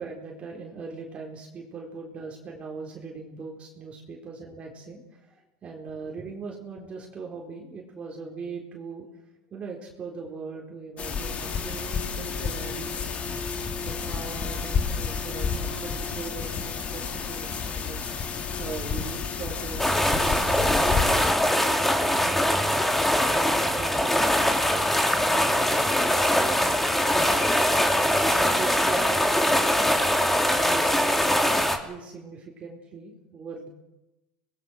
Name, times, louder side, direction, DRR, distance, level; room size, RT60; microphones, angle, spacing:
voice 1, 0.0-9.1 9.5-13.3 13.7-18.0 18.6-22.8 23.3-26.6 27.1-27.4 27.7-30.0 30.4-31.5 31.8-33.7, right 4 dB, 35° right, -1 dB, 4.3 m, -40 dB
sound 1, 11.0-21.3, left 5 dB, 40° left, 3.5 m, -30 dB
sound 2, 19.8-31.8, left 1 dB, 5° left, 3.2 m, -22 dB
26.0 x 20.0 x 6.4 m, 0.97 s
supercardioid pair, 100°, 3 cm